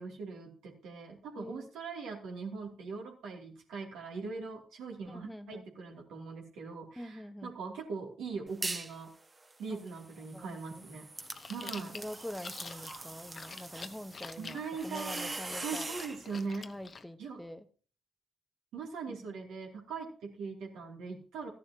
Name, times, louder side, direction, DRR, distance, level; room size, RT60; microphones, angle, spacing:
voice 1, 0.0-9.1 9.6-11.1 11.5-11.9 14.4-15.3 15.6-16.7 17.2-17.4 18.7-21.5, right 4 dB, 70° right, 2.7 m, -41 dB
voice 2, 1.3-1.7 5.1-5.7 7.0-7.5 9.7-9.8 10.3-10.9 11.6-15.9 16.6-17.7 19.1-19.4, left 1 dB, 5° left, 1.1 m, -45 dB
sound 1, 8.5-9.0 9.4-16.2, right 2 dB, 30° right, 1.6 m, -43 dB
Chewing mastication, 11.2-17.0, left 4 dB, 40° left, 0.9 m, -48 dB
15.0 x 11.0 x 2.9 m
hypercardioid pair, 40°, 0 cm